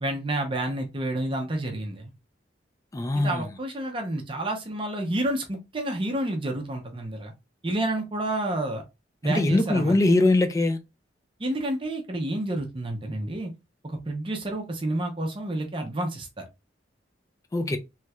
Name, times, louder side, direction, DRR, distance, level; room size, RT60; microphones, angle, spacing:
voice 1, 0.0-2.1 3.2-7.3 7.6-8.8 9.2-10.0 11.4-13.5 13.8-16.4, right 1 dB, 30° right, 0.6 m, -29 dB
voice 2, 2.9-3.6 9.2-10.8 17.5-17.8, left 2 dB, 15° left, 0.3 m, -22 dB
3.1 x 3.0 x 2.3 m
head